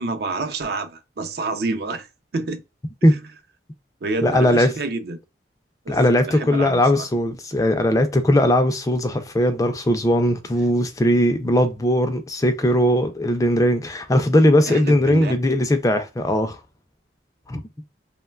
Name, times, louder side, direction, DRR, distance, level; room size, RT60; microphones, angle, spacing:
voice 1, 0.0-2.6 3.0-3.2 4.0-5.2 5.9-7.1 14.7-15.4, right 3 dB, 60° right, 0.4 m, -28 dB
voice 2, 4.2-4.7 5.9-16.6 17.5-17.6, left 1 dB, 20° left, 0.3 m, -19 dB
3.0 x 2.1 x 2.3 m
head